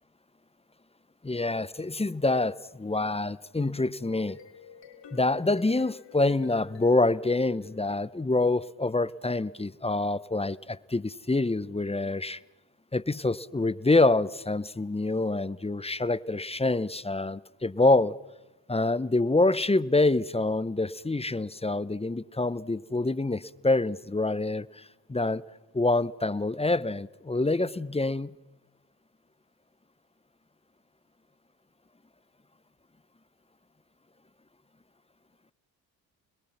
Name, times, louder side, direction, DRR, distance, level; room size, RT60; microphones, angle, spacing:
voice 1, 1.2-4.4 5.1-12.4 12.9-18.2 18.7-25.4 25.7-28.3, left 2 dB, 10° left, 1.0 m, -26 dB
sound 1, 4.1-8.4, left 9 dB, 65° left, 3.4 m, -50 dB
30.0 x 21.5 x 6.0 m
hypercardioid pair, 45°, 48 cm